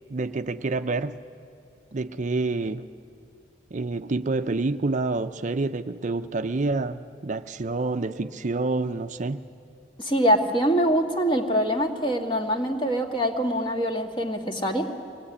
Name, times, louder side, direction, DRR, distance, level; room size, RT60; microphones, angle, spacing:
voice 1, 0.1-1.2 1.9-2.9 3.7-9.4, right 3 dB, 40° right, 10 dB, 0.5 m, -28 dB
voice 2, 10.0-14.9, equal, 25° left, 4 dB, 2.0 m, -24 dB
23.5 x 19.0 x 9.8 m, 2.7 s
head